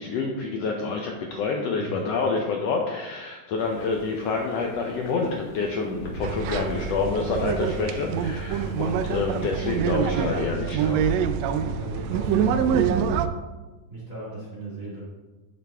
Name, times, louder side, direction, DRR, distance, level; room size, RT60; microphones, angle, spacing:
voice 1, 0.0-11.0, left 4 dB, 70° left, 1 dB, 1.6 m, -27 dB
sound 1, 3.6-9.8, left 1 dB, 90° left, 0.9 m, -43 dB
sound 2, 6.2-13.3, right 7 dB, 80° right, 1.6 m, -25 dB
voice 2, 11.7-13.2 13.9-15.0, right 2 dB, 30° right, -6 dB, 1.8 m, -37 dB
9.5 x 7.6 x 3.5 m, 1.2 s
omnidirectional pair, 3.6 m